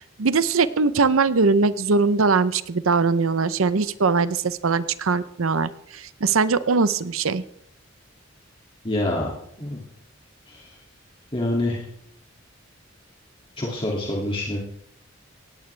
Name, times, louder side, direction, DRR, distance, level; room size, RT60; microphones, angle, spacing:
voice 1, 0.2-7.4, right 4 dB, 90° right, 15 dB, 0.7 m, -21 dB
voice 2, 8.8-9.3 9.6-9.8 10.5-10.7 11.3-11.8 13.6-14.6, left 1 dB, 25° left, -3 dB, 2.4 m, -26 dB
18.0 x 16.5 x 3.4 m, 0.71 s
head